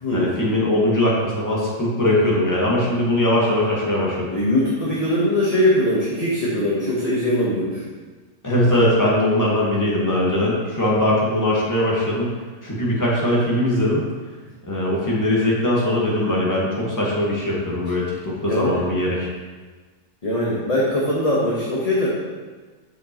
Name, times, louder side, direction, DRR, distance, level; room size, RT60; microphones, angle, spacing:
voice 1, 0.1-4.3 8.4-12.3 12.6-14.0 14.7-19.3, left 1 dB, 15° left, -5 dB, 1.4 m, -20 dB
voice 2, 4.3-7.8 18.5-18.9 20.2-22.1, left 1 dB, 30° left, -6 dB, 1.1 m, -21 dB
8.2 x 6.6 x 3.0 m, 1.4 s
omnidirectional pair, 1.5 m